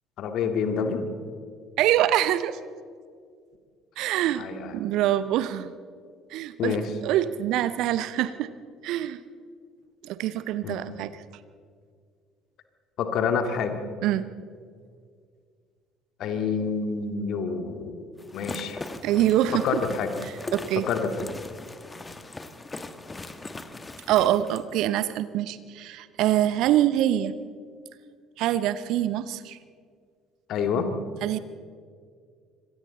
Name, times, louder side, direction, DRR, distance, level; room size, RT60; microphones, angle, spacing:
voice 1, 0.2-1.0 4.4-4.6 6.6-6.9 10.6-10.8 13.0-13.8 16.2-18.8 19.6-20.1 20.9-21.3 30.5-30.9, left 6 dB, 50° left, 6 dB, 2.2 m, -27 dB
voice 2, 1.8-2.6 4.0-4.5 4.7-5.7 6.3-8.5 8.8-9.2 10.0-11.2 14.0-14.3 19.0-19.8 20.2-20.9 24.1-27.3 28.4-29.6 31.2-31.4, right 12 dB, 55° right, 14 dB, 0.8 m, -25 dB
sound 1, 18.2-24.6, left 2 dB, 20° left, 1.5 m, -39 dB
26.0 x 25.5 x 4.0 m, 2.1 s
figure-of-eight pair, 55°, 0 cm